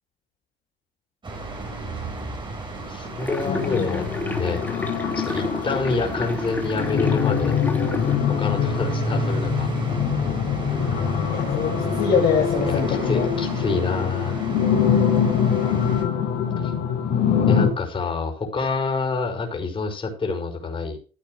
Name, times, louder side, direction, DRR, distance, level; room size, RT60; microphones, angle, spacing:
sound 1, 1.2-16.0, right 2 dB, 30° right, 5.1 m, -33 dB
voice 1, 2.9-4.0 4.4-4.6 5.1-7.6 8.3-9.7 12.7-14.4 16.6-16.7 17.5-21.0, left 4 dB, 30° left, 2 dB, 5.7 m, -27 dB
sound 2, 3.2-8.2, left 1 dB, 10° left, 2.9 m, -31 dB
sound 3, 3.4-17.7, left 7 dB, 80° left, 3.9 m, -24 dB
voice 2, 11.3-13.3, left 6 dB, 60° left, 0 dB, 2.7 m, -24 dB
15.5 x 8.5 x 3.4 m, 0.36 s
cardioid pair, 110°, 17 cm